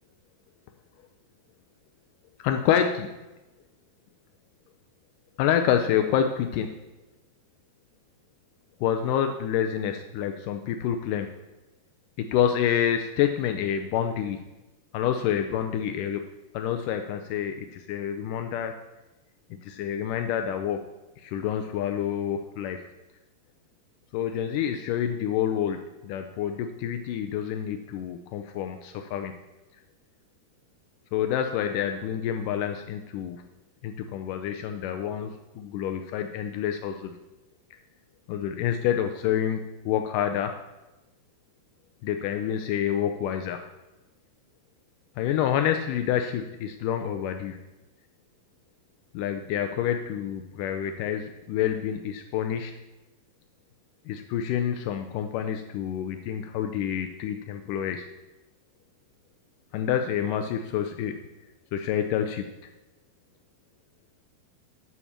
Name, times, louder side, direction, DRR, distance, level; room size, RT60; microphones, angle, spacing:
voice 1, 2.4-3.1 5.4-6.7 8.8-11.3 12.2-14.4 14.9-16.2 16.5-18.8 19.6-20.8 21.2-22.9 24.1-29.3 31.1-33.4 33.8-37.1 38.3-40.6 42.0-43.6 45.2-47.6 49.1-52.8 54.1-58.1 59.7-61.2 61.7-62.5, left 9 dB, 85° left, 6 dB, 1.9 m, -28 dB
8.6 x 7.0 x 7.2 m, 1.1 s
omnidirectional pair, 4.4 m